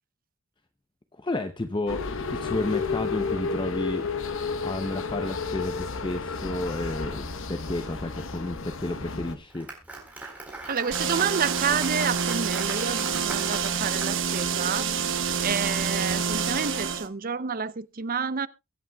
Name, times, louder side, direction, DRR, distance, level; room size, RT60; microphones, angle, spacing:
voice 1, 1.2-4.1 4.6-9.7, left 2 dB, 20° left, 0.6 m, -32 dB
sound 1, 1.9-9.4, left 4 dB, 65° left, 1.0 m, -32 dB
Applause, 9.3-14.4, right 2 dB, 5° right, 3.9 m, -39 dB
voice 2, 10.7-14.9 15.4-18.5, right 6 dB, 40° right, 0.6 m, -29 dB
sound 2, 10.9-17.1, right 6 dB, 60° right, 1.1 m, -27 dB
23.0 x 8.4 x 2.3 m
head